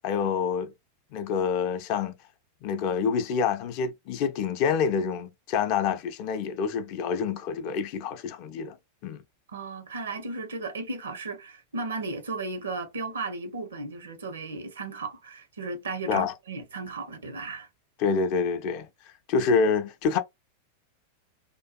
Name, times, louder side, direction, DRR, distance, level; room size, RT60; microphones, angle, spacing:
voice 1, 0.0-0.7 1.1-2.1 2.6-8.8 9.0-9.2 16.1-16.3 18.0-18.9 19.3-20.2, left 6 dB, 45° left, 0.4 m, -27 dB
voice 2, 9.5-17.7, right 3 dB, 70° right, 0.6 m, -35 dB
2.6 x 2.2 x 2.3 m
figure-of-eight pair, 90°, 0 cm